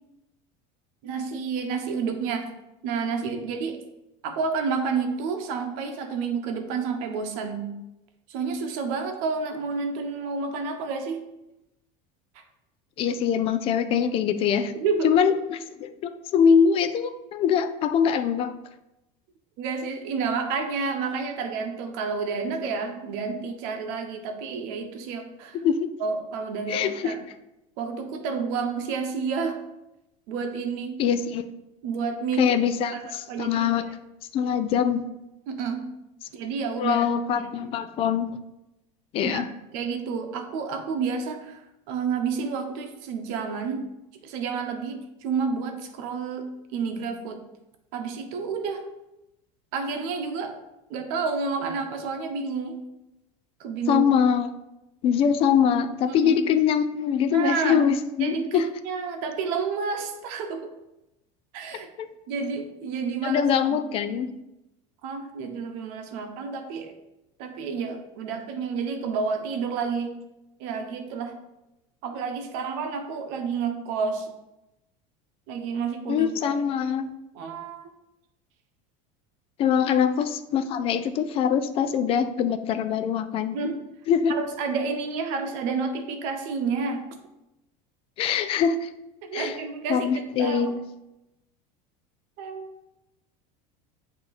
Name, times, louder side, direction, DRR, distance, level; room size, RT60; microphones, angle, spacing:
voice 1, 1.0-2.5 2.8-3.8 4.2-7.7 8.3-11.2 14.8-15.1 19.6-25.6 26.0-27.2 27.8-29.6 30.3-31.1 31.8-32.5 32.9-33.7 35.5-35.9 36.3-37.1 37.3-37.7 39.2-39.4 39.7-43.9 44.2-46.5 46.7-47.4 47.9-48.8 49.7-50.6 50.9-52.8 53.6-54.1 56.0-56.4 57.3-57.8 58.2-60.7 61.5-61.9 62.3-63.4 63.7-63.8 65.0-66.9 67.4-70.2 70.6-71.4 72.0-74.3 75.5-76.5 77.3-77.9 83.5-83.8 84.3-87.1 89.2-90.7 92.4-92.7, right 5 dB, 60° right, 5 dB, 0.9 m, -30 dB
voice 2, 13.0-14.7 15.0-18.6 25.5-25.9 26.7-27.2 31.0-31.4 32.4-33.8 34.3-35.1 36.8-38.4 39.1-39.5 53.9-54.5 55.0-58.7 62.0-62.1 63.2-64.3 76.1-77.1 79.6-83.6 84.1-84.3 88.2-88.9 89.3-89.6 89.9-90.8, left 7 dB, 35° left, 11 dB, 0.4 m, -23 dB
8.6 x 2.9 x 4.0 m, 0.92 s
cardioid pair, 150°, 17 cm